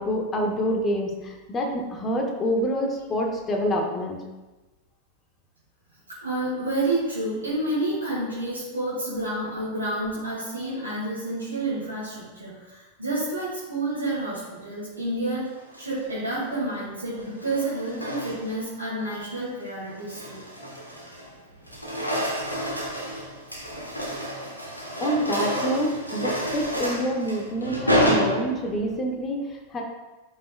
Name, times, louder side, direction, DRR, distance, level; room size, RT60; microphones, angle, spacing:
voice 1, 0.0-4.2 25.0-29.8, equal, 25° left, 1 dB, 1.3 m, -27 dB
voice 2, 6.1-15.5 15.8-20.4, right 1 dB, 80° right, -9 dB, 2.1 m, -29 dB
sound 1, 15.5-16.0 17.1-18.7 19.1-19.4 19.9-21.3 21.6-28.9, equal, 85° left, 1.3 m, -29 dB
12.5 x 5.5 x 2.3 m, 1.1 s
figure-of-eight pair, 90°, 0 cm